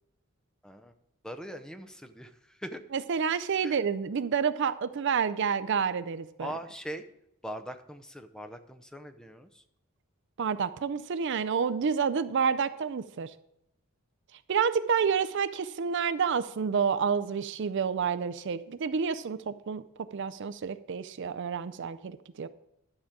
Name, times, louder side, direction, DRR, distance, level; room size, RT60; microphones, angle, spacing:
voice 1, 1.2-2.8 3.6-3.8 6.4-7.1 7.4-9.6, equal, 5° left, 7 dB, 0.6 m, -41 dB
voice 2, 2.9-6.5 10.4-13.3 14.5-19.8 20.1-22.5, right 6 dB, 55° right, 12 dB, 0.4 m, -29 dB
12.0 x 5.0 x 7.2 m, 0.82 s
head